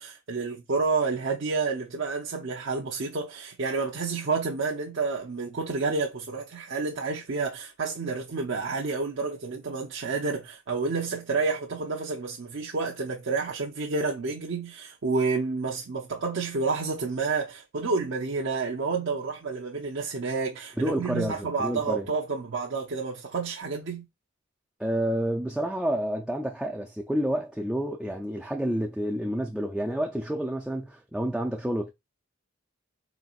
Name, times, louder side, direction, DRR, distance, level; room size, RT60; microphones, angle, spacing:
voice 1, 0.0-24.1, right 4 dB, 65° right, 0.7 m, -29 dB
voice 2, 20.8-22.1 24.8-31.9, right 1 dB, 5° right, 0.4 m, -29 dB
4.2 x 3.8 x 2.4 m
head